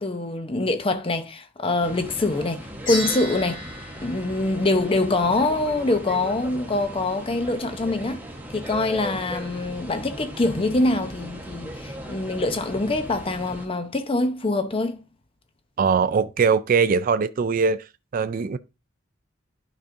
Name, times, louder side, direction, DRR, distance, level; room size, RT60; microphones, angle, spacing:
voice 1, 0.0-3.6 4.0-8.2 8.5-15.0, left 2 dB, 25° left, 0.7 m, -24 dB
sound 1, 1.8-13.7, equal, 10° right, 1.2 m, -38 dB
sound 2, 2.9-5.3, left 1 dB, 65° left, 4.7 m, -34 dB
voice 2, 15.8-17.8 18.1-18.6, right 5 dB, 45° right, 0.3 m, -21 dB
11.0 x 5.0 x 2.6 m
head